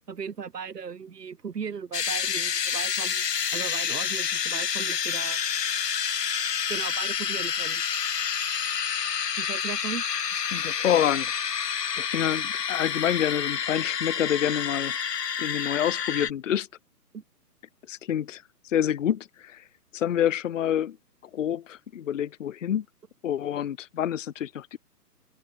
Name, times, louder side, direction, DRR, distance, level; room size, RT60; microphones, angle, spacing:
voice 1, 0.1-3.3 3.5-5.4 6.7-7.8 9.4-10.0 17.1-17.2, right 6 dB, 90° right, 2.1 m, -37 dB
sound 1, 1.9-16.3, left 7 dB, 85° left, 1.3 m, -29 dB
voice 2, 10.5-11.3 12.0-15.0 15.4-16.7 17.9-19.6 19.9-21.0 21.3-22.9 23.2-24.8, left 10 dB, 55° left, 0.5 m, -27 dB
hypercardioid pair, 165°, 47 cm